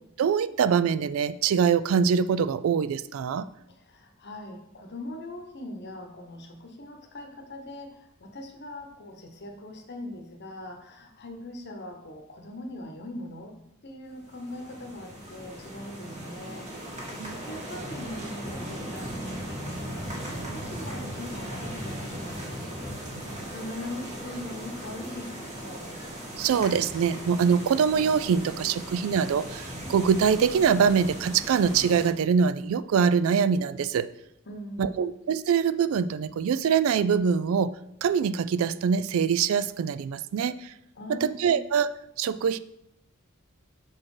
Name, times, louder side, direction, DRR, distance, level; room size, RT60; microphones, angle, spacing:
voice 1, 0.2-3.5 17.2-17.3 23.1-23.3 26.4-34.1 34.8-37.7 38.0-40.7 41.4-41.9 42.2-42.6, right 6 dB, 70° right, 15 dB, 0.3 m, -24 dB
voice 2, 3.7-13.5 13.8-26.0 34.5-35.1 41.0-41.6, left 1 dB, 55° left, 5 dB, 0.9 m, -41 dB
sound 1, 14.2-32.1, equal, 35° right, 1.7 m, -38 dB
5.8 x 4.2 x 4.9 m, 0.82 s
head